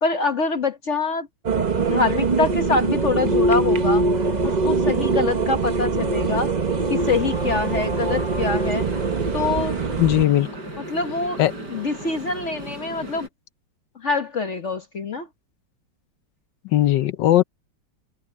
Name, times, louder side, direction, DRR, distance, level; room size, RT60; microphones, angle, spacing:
voice 1, 0.0-1.3 1.7-4.1 4.4-6.5 6.9-8.9 9.3-9.8 10.9-11.4 11.7-13.3 13.9-15.3, left 4 dB, 45° left, 1.2 m, -25 dB
sound 1, 1.4-10.2, right 3 dB, 35° right, 0.7 m, -22 dB
sound 2, 7.0-13.3, right 1 dB, 55° right, 6.5 m, -37 dB
voice 2, 10.0-10.5 11.4-11.5 16.6-17.4, left 13 dB, 70° left, 1.2 m, -18 dB
omnidirectional pair, 2.2 m